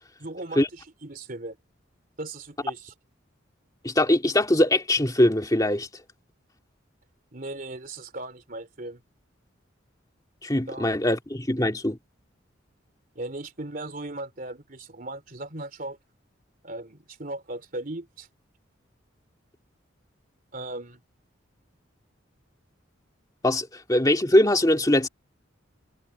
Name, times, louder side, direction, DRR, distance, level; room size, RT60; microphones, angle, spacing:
voice 1, 0.2-1.6 2.2-2.9 7.3-9.0 10.7-10.9 13.1-16.0 16.6-18.3 20.5-21.0, right 2 dB, 45° right, 3.2 m, -37 dB
voice 2, 3.8-5.9 10.4-12.0 23.4-25.1, left 1 dB, 20° left, 2.0 m, -22 dB
head